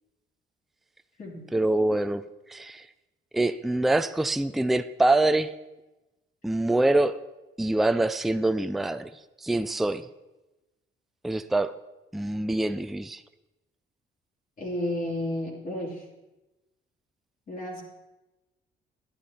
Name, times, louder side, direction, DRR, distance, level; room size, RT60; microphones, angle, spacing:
voice 1, 1.5-2.2 2.5-2.9 3.3-5.5 6.4-7.2 7.6-9.1 9.4-10.1 11.2-11.7 12.1-13.2, right 2 dB, ahead, 12 dB, 0.4 m, -25 dB
voice 2, 14.6-16.0 17.5-17.8, left 1 dB, 45° left, -3 dB, 2.8 m, -32 dB
11.5 x 10.5 x 4.1 m, 1.0 s
cardioid pair, 90°, 20 cm